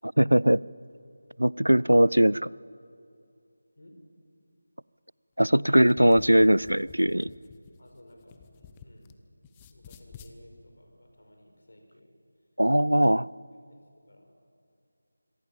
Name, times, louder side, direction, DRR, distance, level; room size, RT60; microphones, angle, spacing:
voice 1, 0.0-0.6 1.4-2.5 5.4-7.3 12.6-13.3, right 1 dB, 90° right, 23 dB, 0.5 m, -20 dB
sound 1, 5.7-9.1 9.4-10.3, left 6 dB, 15° left, 1.0 m, -50 dB
voice 2, 7.8-9.2 9.7-12.2 13.7-14.3, left 1 dB, 65° left, 3 dB, 5.1 m, -55 dB
27.0 x 23.0 x 7.3 m, 2.6 s
figure-of-eight pair, 165°, 0 cm